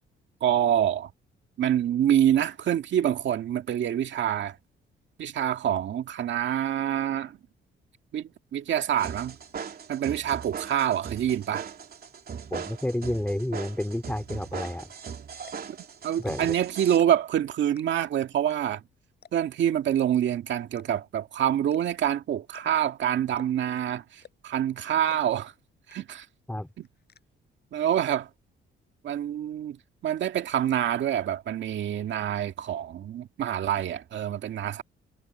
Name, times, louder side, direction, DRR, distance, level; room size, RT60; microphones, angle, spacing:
voice 1, 0.4-1.1 1.6-4.6 5.2-7.4 8.1-9.4 9.9-11.7 16.0-18.8 19.3-25.5 25.9-26.3 26.8-26.9 27.7-28.3 29.0-29.8 30.0-34.8, right 10 dB, 70° right, 2.0 m, -26 dB
sound 1, 9.0-17.0, right 7 dB, 50° right, 3.2 m, -39 dB
voice 2, 12.5-14.9 16.2-16.5 26.5-26.7, left 1 dB, 5° left, 3.3 m, -30 dB
sound 2, 14.6-14.9 15.3-15.8 16.1-16.6 17.0-17.4 17.8-18.1 18.5-18.6 18.8-18.9 19.2-19.6 20.0-20.1 20.7-21.1 21.6-21.8 22.1-22.2 22.5-22.9 23.3-23.7 24.2-24.6 25.1-25.2 25.5-25.6 25.9-26.3 26.6-27.2, left 8 dB, 55° left, 6.2 m, -52 dB
cardioid pair, 90°, 20 cm